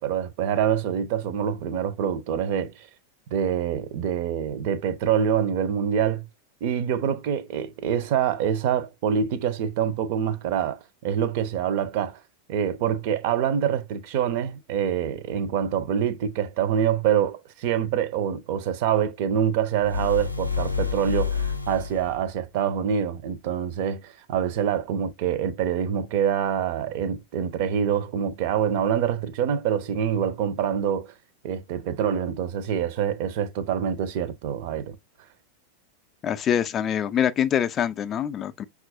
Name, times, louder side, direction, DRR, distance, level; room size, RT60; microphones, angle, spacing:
voice 1, 0.0-2.9 3.3-6.2 6.6-12.2 12.5-31.1 31.4-35.0, right 8 dB, 50° right, 0.5 m, -25 dB
sound 1, 19.8-22.2, left 6 dB, 90° left, 0.5 m, -28 dB
voice 2, 36.2-38.6, left 9 dB, 25° left, 0.3 m, -24 dB
5.7 x 2.4 x 2.5 m
figure-of-eight pair, 90°, 0 cm